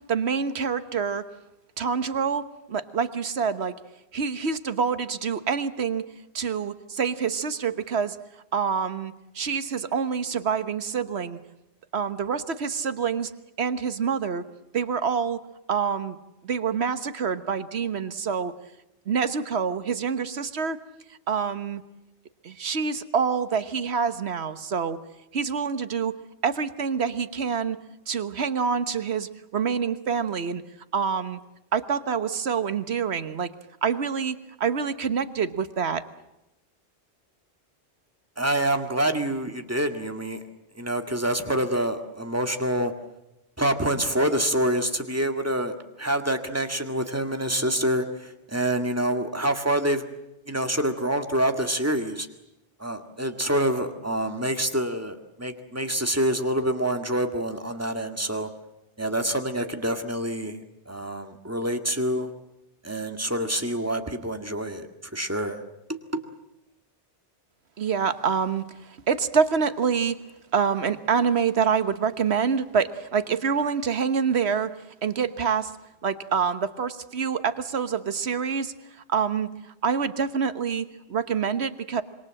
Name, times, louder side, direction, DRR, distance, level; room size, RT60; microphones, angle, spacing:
voice 1, 0.1-1.2 1.8-3.8 4.1-6.0 6.3-8.2 8.5-11.4 11.9-13.3 13.6-14.4 14.7-15.4 15.7-16.2 16.4-18.5 19.1-20.8 21.3-21.8 22.4-25.0 25.3-26.1 26.4-27.8 28.1-30.6 30.9-31.4 31.7-33.5 33.8-36.0 67.8-70.2 70.5-74.7 75.0-75.7 76.0-78.7 79.1-79.5 79.8-82.0, right 6 dB, 70° right, 11 dB, 1.5 m, -26 dB
voice 2, 38.4-40.4 40.8-42.9 43.6-50.0 50.5-52.3 52.8-58.5 59.0-62.3 62.8-64.9 65.1-65.6 66.1-66.2, right 1 dB, 15° right, 6 dB, 1.9 m, -26 dB
26.5 x 23.5 x 7.7 m, 0.90 s
omnidirectional pair, 1.2 m